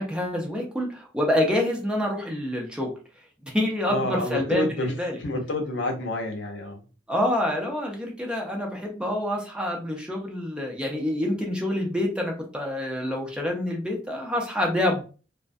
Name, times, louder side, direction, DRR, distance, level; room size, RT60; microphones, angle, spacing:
voice 1, 0.0-2.9 3.5-5.2 7.1-15.0, left 1 dB, 5° right, 0.4 m, -27 dB
voice 2, 3.8-4.9 5.2-6.8, left 1 dB, 80° left, 0.6 m, -28 dB
2.3 x 2.1 x 2.5 m
head